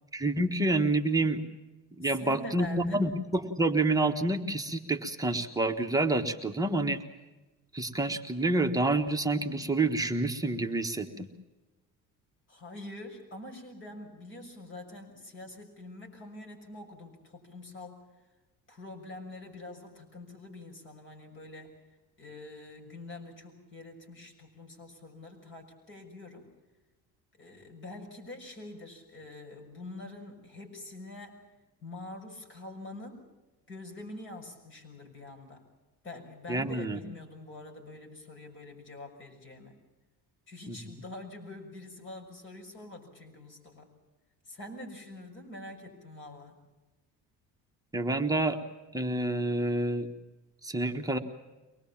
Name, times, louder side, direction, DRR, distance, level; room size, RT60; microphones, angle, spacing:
voice 1, 0.1-1.4 2.0-7.0 7.7-11.3 36.5-37.0 40.7-40.8 47.9-48.6 48.9-50.1 50.6-51.2, right 2 dB, 10° right, 4 dB, 1.4 m, -28 dB
voice 2, 2.0-3.0 12.5-18.0 18.7-21.7 22.2-26.5 27.4-31.4 31.8-33.2 33.7-35.6 36.0-39.8 40.5-43.9 44.4-46.6, left 2 dB, 35° left, 3 dB, 6.3 m, -45 dB
24.0 x 20.0 x 7.3 m, 1.1 s
cardioid pair, 135°, 32 cm